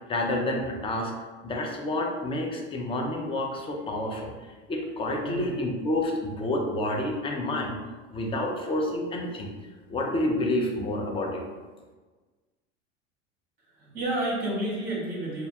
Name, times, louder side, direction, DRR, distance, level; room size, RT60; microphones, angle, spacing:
voice 1, 0.1-1.1 1.4-7.8 8.1-9.5 9.9-11.4, left 1 dB, 15° left, 1 dB, 0.4 m, -29 dB
voice 2, 13.8-15.5, right 1 dB, 25° right, -5 dB, 0.8 m, -30 dB
2.4 x 2.1 x 2.7 m, 1.3 s
hypercardioid pair, 85°, 35 cm